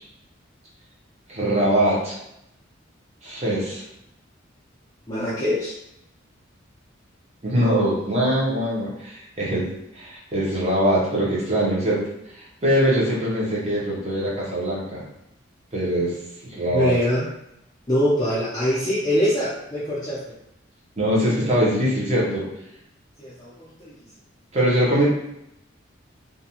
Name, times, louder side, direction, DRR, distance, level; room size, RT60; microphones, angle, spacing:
voice 1, 1.3-2.2 3.2-3.8 7.4-12.0 12.3-15.0 15.7-16.2 16.4-16.9 21.0-22.4 24.5-25.0, equal, 35° right, -5 dB, 0.8 m, -22 dB
voice 2, 5.1-5.8 16.7-17.3 17.9-20.2 23.2-23.9, equal, 20° left, -10 dB, 0.5 m, -23 dB
2.4 x 2.2 x 2.8 m, 0.81 s
head